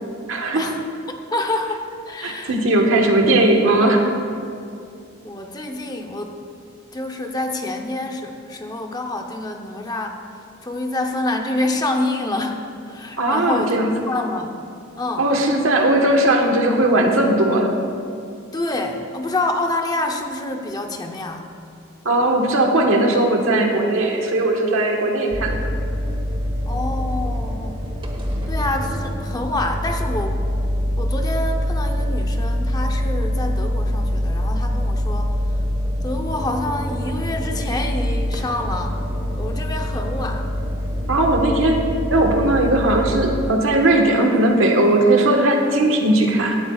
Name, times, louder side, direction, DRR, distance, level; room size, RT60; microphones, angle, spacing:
voice 1, 0.3-0.6 2.2-4.1 13.2-13.9 15.2-17.7 22.0-25.7 41.1-41.8 42.1-46.6, right 1 dB, 85° right, 2 dB, 1.4 m, -18 dB
voice 2, 1.3-2.6 5.2-6.3 6.9-10.2 10.6-13.8 14.1-14.5 15.0-15.3 18.5-21.5 26.7-27.8 28.5-30.4 31.0-35.3 36.0-39.0 39.4-40.5, left 2 dB, 20° left, 3 dB, 0.8 m, -27 dB
sound 1, 25.3-43.5, equal, 25° right, 1.3 m, -24 dB
17.0 x 12.0 x 2.4 m, 2.4 s
head